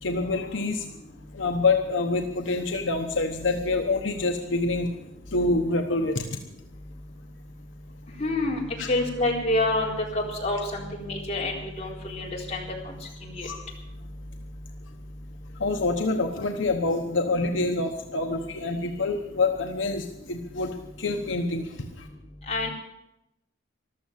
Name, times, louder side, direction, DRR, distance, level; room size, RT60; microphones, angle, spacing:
voice 1, 0.0-0.8 1.4-4.9 5.3-6.2 8.8-8.9 13.4-13.6 15.6-20.7 21.0-21.6, left 3 dB, 75° left, 4 dB, 1.0 m, -26 dB
voice 2, 8.2-8.6 8.9-12.9 13.4-13.5 22.5-22.7, left 2 dB, 35° left, -2 dB, 4.0 m, -27 dB
14.0 x 12.5 x 7.4 m, 0.89 s
head